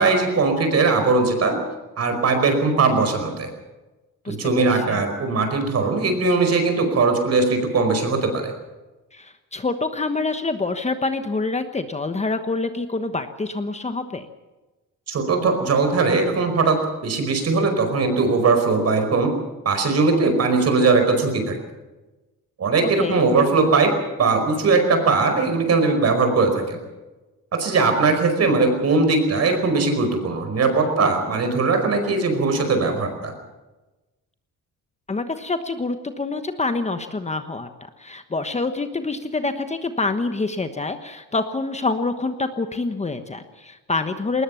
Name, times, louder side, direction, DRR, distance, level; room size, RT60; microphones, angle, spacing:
voice 1, 0.0-1.5 2.0-3.5 4.3-8.5 15.1-19.3 19.6-21.6 22.6-23.9 24.2-26.8 27.5-33.3, right 3 dB, 50° right, 6 dB, 5.0 m, -20 dB
voice 2, 4.2-5.0 9.1-14.3 22.8-23.2 35.1-37.7 38.0-44.4, left 3 dB, 20° left, 8 dB, 1.2 m, -26 dB
20.5 x 20.0 x 7.1 m, 1.1 s
cardioid pair, 135°, 33 cm